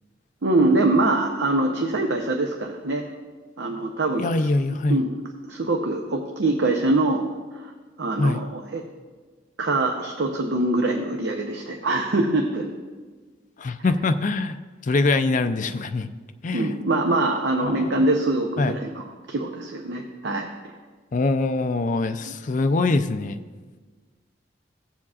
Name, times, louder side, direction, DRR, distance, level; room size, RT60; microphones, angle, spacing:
voice 1, 0.4-3.1 3.6-4.5 4.9-5.2 5.4-7.2 7.5-7.7 8.0-8.8 9.6-12.7 16.5-20.5, right 2 dB, 70° right, 3 dB, 0.7 m, -24 dB
voice 2, 4.2-5.0 8.2-8.4 13.6-14.6 14.8-16.1 16.4-16.7 17.6-18.1 18.6-18.8 21.1-23.4, left 3 dB, 45° left, 9 dB, 0.4 m, -23 dB
15.5 x 7.2 x 2.4 m, 1.4 s
head